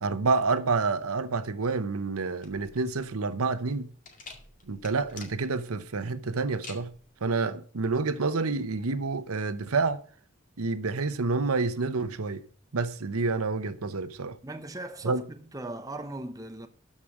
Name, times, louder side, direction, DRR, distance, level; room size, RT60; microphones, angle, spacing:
voice 1, 0.0-3.9 4.7-6.9 7.2-10.0 10.6-12.4 12.7-14.4 15.0-15.2, right 4 dB, 85° right, 0.8 m, -28 dB
sound 1, 2.4-10.0, left 4 dB, 35° left, 2.0 m, -50 dB
voice 2, 14.4-16.7, right 2 dB, 15° right, 0.8 m, -39 dB
13.0 x 5.0 x 6.2 m
head